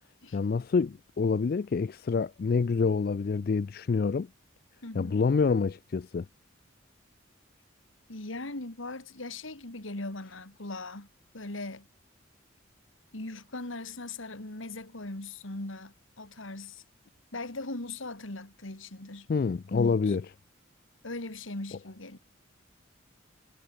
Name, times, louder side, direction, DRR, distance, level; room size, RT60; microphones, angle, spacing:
voice 1, 0.3-4.3 5.0-6.3 19.3-20.2, left 5 dB, 50° left, 0.3 m, -27 dB
voice 2, 4.8-5.3 8.1-11.1 11.3-11.9 13.1-16.8 17.3-19.3 19.7-20.2 21.0-22.2, left 2 dB, 80° left, 2.7 m, -39 dB
head